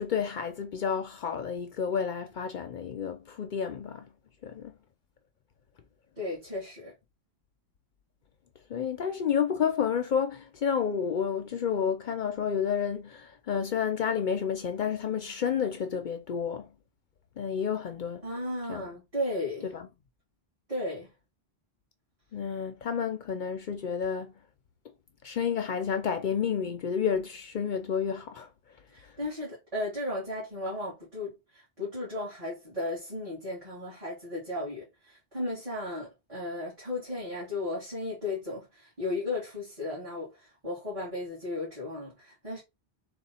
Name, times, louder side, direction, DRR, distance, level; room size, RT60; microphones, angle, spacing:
voice 1, 0.0-4.1 4.4-4.7 8.7-16.7 17.4-18.2 18.7-18.8 19.6-19.9 22.3-24.3 25.2-28.5 29.0-29.1, left 7 dB, 60° left, 0.6 m, -30 dB
voice 2, 6.2-6.9 18.2-19.7 20.7-21.1 28.9-42.6, left 2 dB, 35° right, 2.1 m, -35 dB
3.7 x 2.4 x 4.1 m
omnidirectional pair, 1.0 m